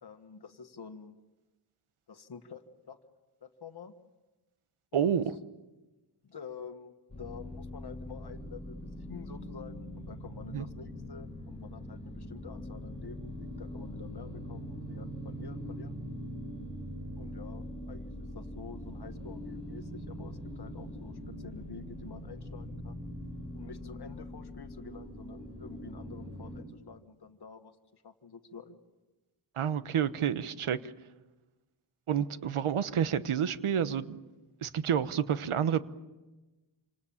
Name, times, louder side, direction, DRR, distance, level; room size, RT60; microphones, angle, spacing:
voice 1, 0.0-1.2 2.1-3.0 3.4-3.9 4.9-5.1 6.2-16.0 17.2-23.0 23.5-28.8, left 5 dB, 50° left, 8 dB, 1.7 m, -48 dB
voice 2, 4.9-5.3 10.5-10.6 29.6-30.9 32.1-34.2 34.6-35.8, right 8 dB, 80° right, 13 dB, 1.2 m, -29 dB
sound 1, 7.1-26.6, equal, 10° left, 4.9 m, -42 dB
28.0 x 26.5 x 7.2 m, 1.1 s
wide cardioid pair, 150°, 49 cm